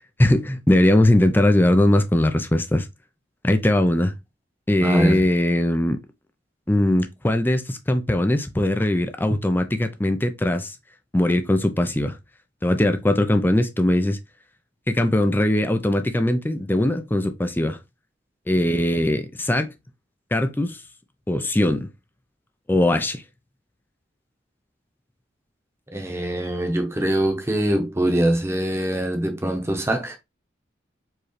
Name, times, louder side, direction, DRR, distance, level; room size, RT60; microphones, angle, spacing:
voice 1, 0.2-2.9 3.4-4.2 4.7-6.0 6.7-10.8 11.1-12.2 12.6-14.2 14.9-17.8 18.5-19.7 20.3-20.8 21.3-21.9 22.7-23.2, left 1 dB, 10° left, 0.4 m, -20 dB
voice 2, 4.8-5.2 25.9-30.2, right 1 dB, 15° right, 0.9 m, -23 dB
4.7 x 3.1 x 3.1 m
head